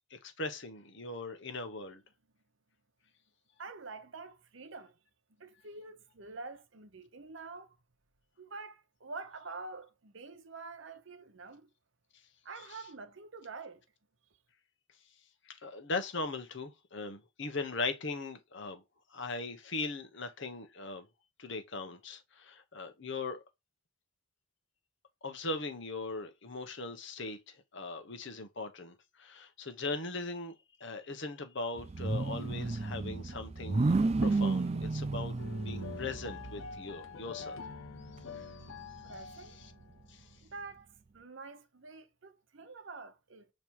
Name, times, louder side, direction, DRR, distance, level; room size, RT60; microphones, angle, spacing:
voice 1, 0.1-2.0 12.6-12.8 15.4-18.8 19.1-21.0 21.4-23.4 25.2-30.5 30.8-35.4 35.6-37.6 38.3-39.7 40.1-40.3, left 3 dB, 60° left, 1.0 m, -40 dB
voice 2, 3.6-5.0 5.4-7.8 8.4-11.7 12.4-13.8 39.0-39.6 40.4-43.5, right 3 dB, 65° right, 0.9 m, -47 dB
sound 1, 31.8-36.8 37.4-37.5 37.9-39.6, right 3 dB, 30° right, 0.4 m, -32 dB
sound 2, 35.4-40.0, left 5 dB, 80° left, 0.6 m, -46 dB
7.2 x 3.2 x 4.6 m
head